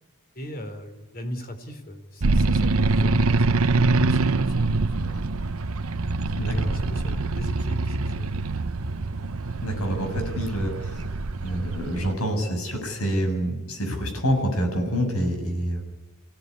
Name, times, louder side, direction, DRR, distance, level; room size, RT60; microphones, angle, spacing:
voice 1, 0.4-4.7 5.0-5.2 6.4-8.3, equal, 40° left, 7 dB, 4.1 m, -38 dB
sound 1, 2.2-12.1, right 3 dB, 70° right, 0.9 m, -24 dB
voice 2, 6.4-6.8 9.6-11.2 11.4-15.8, equal, 70° left, 4 dB, 7.4 m, -27 dB
26.0 x 18.0 x 9.9 m, 1.2 s
head